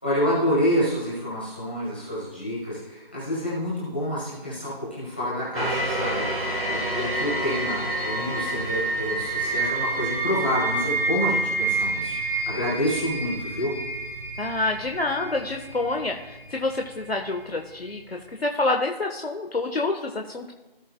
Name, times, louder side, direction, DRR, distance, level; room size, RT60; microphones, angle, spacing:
voice 1, 0.0-13.7, equal, 10° left, -11 dB, 2.2 m, -28 dB
sound 1, 5.5-16.6 17.2-17.3, right 2 dB, 75° right, 3.4 m, -28 dB
voice 2, 14.4-20.5, left 2 dB, 90° left, 3 dB, 1.2 m, -27 dB
17.0 x 6.7 x 2.2 m, 1.1 s
figure-of-eight pair, 180°, 30 cm